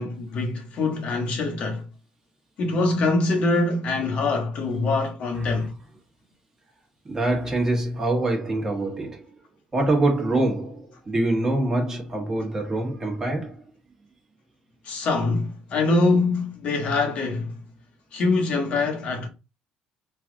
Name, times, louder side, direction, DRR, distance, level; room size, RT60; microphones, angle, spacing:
voice 1, 0.0-1.8 2.6-5.7 14.9-17.6 18.1-19.3, left 3 dB, 55° left, 0.9 m, -24 dB
voice 2, 7.0-9.2 9.7-13.6, right 2 dB, 20° right, 1.2 m, -25 dB
3.3 x 2.4 x 3.7 m
cardioid pair, 125°, 3 cm